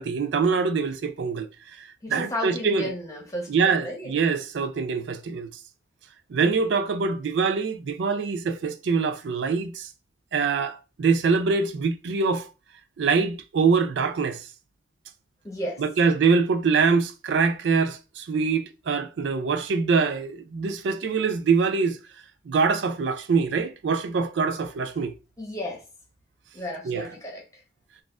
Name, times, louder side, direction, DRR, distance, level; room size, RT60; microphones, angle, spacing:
voice 1, 0.0-1.5 1.8-2.9 3.5-5.5 6.3-9.9 10.3-12.5 13.0-14.4 15.8-22.0 22.5-25.1 26.9-27.1, right 5 dB, 85° right, 0.4 m, -24 dB
voice 2, 2.0-4.1 15.4-15.8 25.4-25.8 26.5-27.6, equal, 20° left, 0.9 m, -33 dB
3.9 x 2.4 x 2.4 m
head